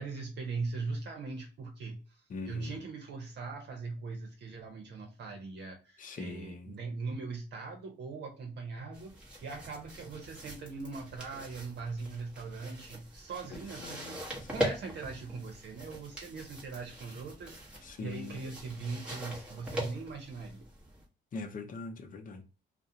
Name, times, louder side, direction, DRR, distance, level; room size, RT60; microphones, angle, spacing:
voice 1, 0.0-20.7, right 4 dB, 60° right, 0.8 m, -41 dB
voice 2, 2.3-2.8 6.0-6.7 13.5-14.5 17.8-18.5 21.3-22.4, left 3 dB, 45° left, 0.6 m, -42 dB
sound 1, 8.9-21.0, equal, 5° right, 1.0 m, -42 dB
2.3 x 2.1 x 2.6 m
cardioid pair, 90°, 20 cm